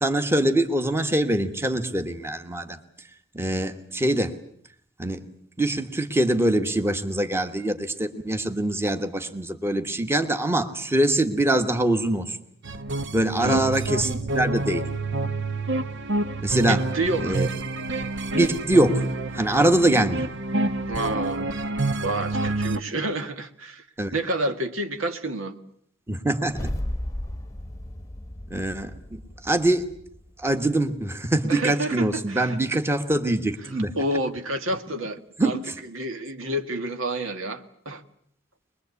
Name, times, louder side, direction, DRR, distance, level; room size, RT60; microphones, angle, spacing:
voice 1, 0.0-2.8 3.3-4.3 5.0-5.3 5.6-12.4 13.1-14.8 16.4-16.8 17.2-17.5 18.3-19.0 19.3-20.3 24.0-24.1 26.1-26.7 28.5-29.9 30.4-33.9 35.4-35.6, right 1 dB, 15° right, 7 dB, 1.4 m, -23 dB
sound 1, 12.6-22.8, right 2 dB, 60° right, 1.0 m, -28 dB
voice 2, 13.4-13.7 16.7-17.4 20.9-21.5 22.0-23.9 24.1-25.5 31.5-32.6 33.6-35.6 35.9-38.0, right 1 dB, 80° right, 7 dB, 1.8 m, -29 dB
sound 2, 26.5-30.8, left 1 dB, 15° left, 1.0 m, -35 dB
23.5 x 21.5 x 8.3 m, 0.65 s
head